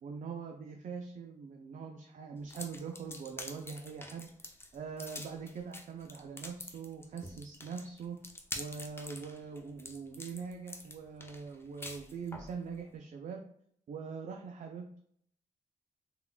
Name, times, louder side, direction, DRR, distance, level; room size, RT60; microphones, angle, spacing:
voice 1, 0.0-8.2 8.6-13.4 13.9-15.0, right 5 dB, 60° right, 3 dB, 0.4 m, -43 dB
sound 1, 2.5-12.5, left 1 dB, 15° left, 0.5 m, -46 dB
3.6 x 2.3 x 2.2 m, 0.67 s
cardioid pair, 65°, 15 cm